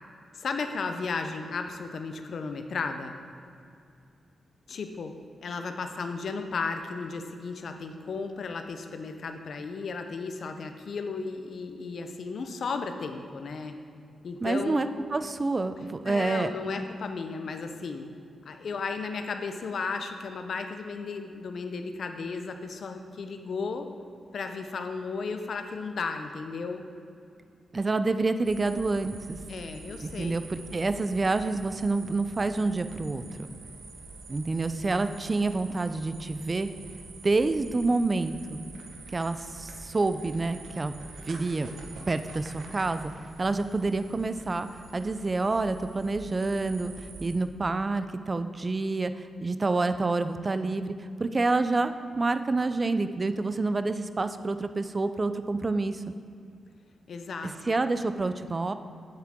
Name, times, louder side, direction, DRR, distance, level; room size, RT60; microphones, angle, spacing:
voice 1, 0.3-3.2 4.7-5.1 5.4-13.7 14.2-14.9 16.1-18.1 18.4-23.9 24.3-26.8 29.5-30.4 57.1-57.8, left 4 dB, 60° left, 6 dB, 0.6 m, -34 dB
voice 2, 14.4-16.5 27.7-29.4 30.0-33.2 34.3-36.7 37.2-38.6 39.1-41.0 41.3-41.7 42.1-43.1 43.4-44.7 44.9-50.9 51.2-56.0 57.7-58.7, right 3 dB, 25° right, 11 dB, 0.3 m, -28 dB
sound 1, 28.4-47.4, right 3 dB, 90° right, 0.8 m, -46 dB
7.5 x 7.4 x 3.6 m, 2.5 s
wide cardioid pair, 120°, 0 cm